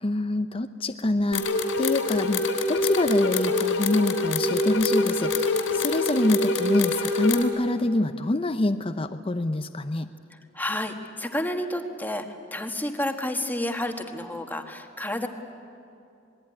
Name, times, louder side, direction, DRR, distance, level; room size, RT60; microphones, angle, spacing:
voice 1, 0.0-10.1, left 1 dB, 30° left, 8 dB, 0.7 m, -26 dB
sound 1, 1.3-7.4, left 2 dB, 85° left, 3.3 m, -25 dB
voice 2, 10.5-12.2 12.5-15.3, left 1 dB, 10° left, 4 dB, 1.6 m, -30 dB
27.5 x 20.5 x 9.9 m, 2.5 s
head